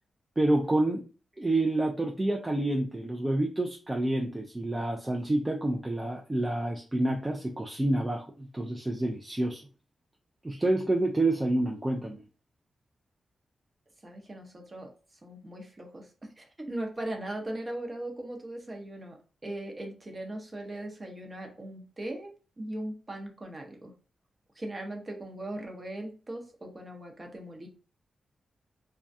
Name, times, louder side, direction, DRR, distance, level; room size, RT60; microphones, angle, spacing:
voice 1, 0.4-1.1 1.4-9.6 10.4-12.2, right 1 dB, 20° right, 1 dB, 0.4 m, -28 dB
voice 2, 14.0-14.9 15.2-19.2 19.4-22.3 22.6-23.9 24.6-27.7, right 1 dB, 35° right, 3 dB, 0.8 m, -39 dB
2.2 x 2.2 x 2.6 m, 0.35 s
cardioid pair, 50°, 0 cm